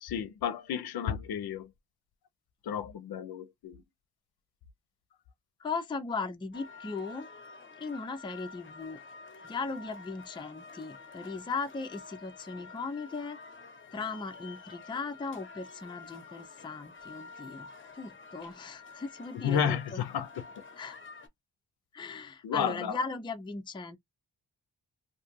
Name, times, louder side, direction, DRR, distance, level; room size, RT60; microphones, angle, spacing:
voice 1, 0.0-1.7 2.7-3.8 19.3-20.3 22.4-23.0, left 8 dB, 75° left, 0.5 m, -32 dB
voice 2, 5.6-7.3 7.8-9.0 9.4-13.4 13.9-17.7 18.0-20.0 20.8-20.9 21.9-24.0, left 4 dB, 15° left, 0.4 m, -38 dB
sound 1, 6.5-21.3, left 4 dB, 30° left, 0.8 m, -49 dB
2.6 x 2.3 x 2.9 m
wide cardioid pair, 120°, 38 cm